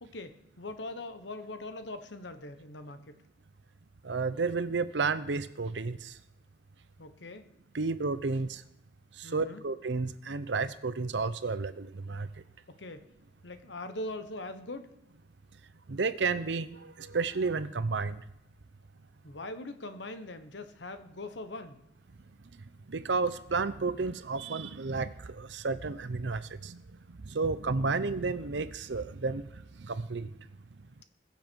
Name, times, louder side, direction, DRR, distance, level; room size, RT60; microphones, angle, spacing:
voice 1, 0.0-3.2 7.0-7.5 9.2-9.6 12.8-13.1 13.4-14.9 19.2-21.8, left 2 dB, 80° left, 9 dB, 1.2 m, -41 dB
voice 2, 4.0-6.0 7.7-8.6 9.2-12.3 15.9-18.2 22.9-26.8 27.3-29.4 29.8-30.3, right 4 dB, 80° right, 14 dB, 0.7 m, -31 dB
21.5 x 7.4 x 4.6 m, 0.89 s
head